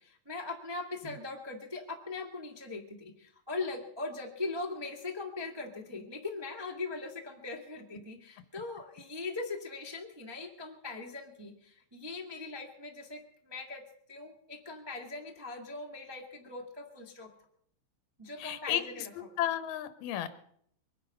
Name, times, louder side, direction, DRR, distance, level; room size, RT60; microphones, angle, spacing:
voice 1, 0.0-13.8 14.1-17.3 18.2-19.4, left 3 dB, 20° right, 1 dB, 0.7 m, -40 dB
voice 2, 18.4-18.8 19.4-20.3, left 11 dB, 90° left, 12 dB, 2.7 m, -32 dB
23.5 x 10.0 x 5.4 m, 0.66 s
omnidirectional pair, 3.8 m